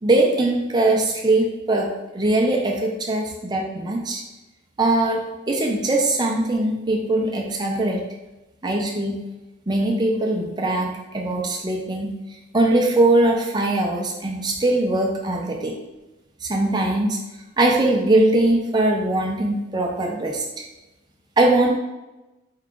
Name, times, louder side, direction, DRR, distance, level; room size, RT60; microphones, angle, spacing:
voice 1, 0.0-4.2 4.8-8.0 8.6-9.2 9.7-12.1 12.5-15.7 16.4-17.2 17.6-20.4 21.4-21.8, right 2 dB, 20° right, 0 dB, 0.5 m, -21 dB
4.6 x 2.4 x 3.6 m, 1.0 s
head